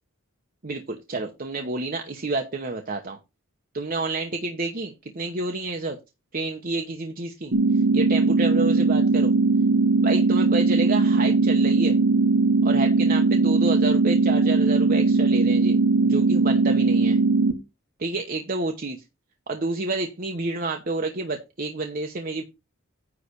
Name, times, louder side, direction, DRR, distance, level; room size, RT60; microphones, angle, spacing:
voice 1, 0.6-3.2 3.7-6.0 6.3-7.5 7.9-9.3 10.0-12.0 12.6-17.2 18.0-19.0 19.5-22.4, right 3 dB, 40° right, 0.9 m, -29 dB
sound 1, 7.5-17.5, right 3 dB, 60° right, 1.2 m, -20 dB
9.6 x 3.2 x 6.5 m
head